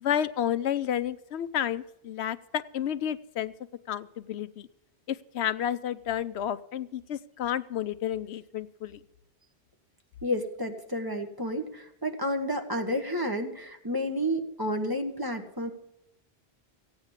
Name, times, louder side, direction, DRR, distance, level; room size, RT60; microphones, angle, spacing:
voice 1, 0.0-3.5 3.9-4.7 5.1-9.0, left 10 dB, 90° left, 14 dB, 1.0 m, -31 dB
voice 2, 10.2-15.7, equal, 20° right, 4 dB, 1.5 m, -31 dB
15.5 x 8.9 x 7.3 m, 0.80 s
omnidirectional pair, 1.1 m